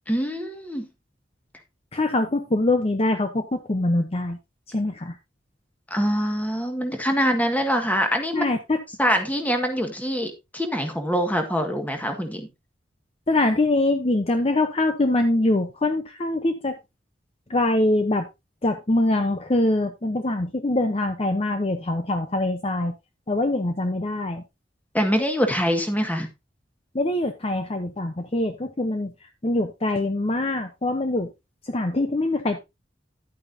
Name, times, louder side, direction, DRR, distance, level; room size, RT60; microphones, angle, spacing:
voice 1, 0.1-0.9 5.9-8.5 9.0-12.5 24.9-26.3, equal, 10° left, 5 dB, 1.7 m, -24 dB
voice 2, 1.9-4.4 4.7-5.2 8.3-8.8 13.3-16.8 17.5-18.3 18.6-22.9 23.3-24.4 26.9-29.1 29.4-31.3 31.6-32.6, left 2 dB, 35° left, 7 dB, 0.8 m, -23 dB
11.0 x 8.7 x 2.7 m, 0.23 s
head